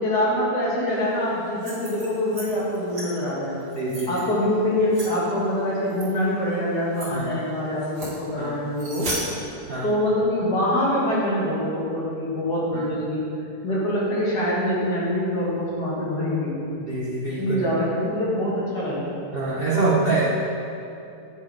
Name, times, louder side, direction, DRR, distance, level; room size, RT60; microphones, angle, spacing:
voice 1, 0.0-3.6 4.1-9.1 9.8-13.2 13.6-16.7 17.4-19.1 19.7-19.9, left 1 dB, 80° left, -7 dB, 2.4 m, -24 dB
sound 1, 1.5-2.5 2.7-3.1 3.6-4.2 4.9-5.1 5.9-6.1 6.5-6.6 6.9-7.1 7.8-8.2 8.7-9.2, right 1 dB, 85° right, 2.4 m, -35 dB
voice 2, 3.8-4.2 7.1-7.3 8.4-8.5 9.6-9.9 12.7-12.9 16.9-17.6 19.3-20.2, right 4 dB, 50° right, -6 dB, 0.8 m, -26 dB
9.5 x 4.2 x 4.8 m, 2.8 s
omnidirectional pair, 1.7 m